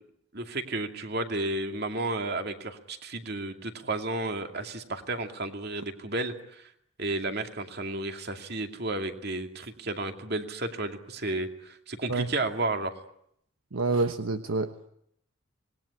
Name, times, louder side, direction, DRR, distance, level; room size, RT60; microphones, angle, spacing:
voice 1, 0.3-6.7 7.0-12.9, right 2 dB, 50° right, 5 dB, 2.5 m, -32 dB
voice 2, 13.7-14.9, right 3 dB, 80° right, 8 dB, 1.1 m, -28 dB
26.5 x 20.5 x 9.9 m, 0.73 s
head